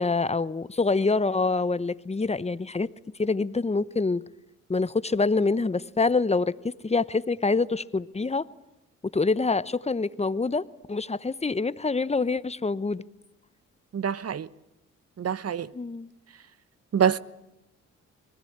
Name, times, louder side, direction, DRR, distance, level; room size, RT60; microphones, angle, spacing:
voice 1, 0.0-2.9 3.2-4.2 4.7-8.5 9.1-13.0 15.7-16.1, left 3 dB, 20° left, 1.0 m, -26 dB
voice 2, 13.9-14.5 15.2-15.7 16.9-17.2, right 8 dB, 50° right, 0.9 m, -25 dB
26.0 x 19.0 x 8.8 m
supercardioid pair, 50°, 32 cm